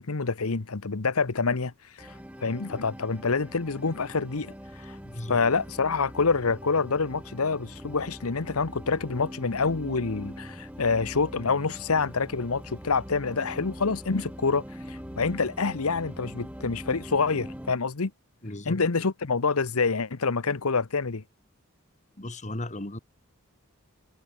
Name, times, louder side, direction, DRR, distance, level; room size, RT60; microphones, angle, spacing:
voice 1, 0.0-4.5 4.8-5.0 5.3-18.1 18.7-21.2, left 4 dB, 80° left, 1.0 m, -27 dB
sound 1, 2.0-17.7, equal, 5° right, 4.7 m, -42 dB
voice 2, 5.0-5.4 18.4-18.8 22.2-23.0, left 1 dB, 35° left, 2.3 m, -36 dB
head